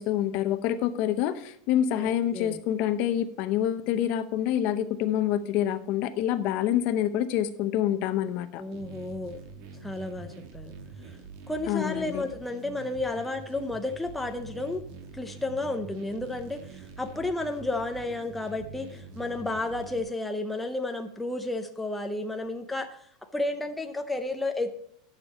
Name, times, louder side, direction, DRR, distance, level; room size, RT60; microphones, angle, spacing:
voice 1, 0.0-8.6 11.7-12.2, left 11 dB, 45° left, 0.7 m, -27 dB
voice 2, 1.9-2.6 8.5-9.4 9.8-10.7 11.0-11.1 11.5-14.8 15.1-24.8, left 2 dB, 5° left, 0.6 m, -32 dB
sound 1, 8.7-20.0, right 4 dB, 55° right, 1.5 m, -45 dB
10.0 x 6.6 x 5.3 m
supercardioid pair, 155°, 3 cm